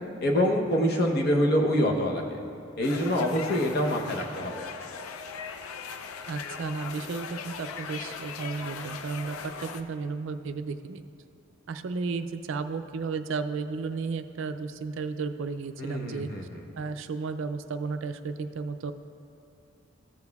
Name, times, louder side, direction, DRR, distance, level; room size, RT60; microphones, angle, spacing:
voice 1, 0.2-2.4 2.8-4.7 15.8-16.6, equal, 50° left, 0 dB, 0.9 m, -26 dB
sound 1, 2.8-9.8, left 6 dB, 85° left, 0.5 m, -39 dB
voice 2, 6.3-11.0 11.7-16.3 16.7-18.9, right 4 dB, 65° right, 9 dB, 0.3 m, -33 dB
14.5 x 7.1 x 2.3 m, 2.6 s
head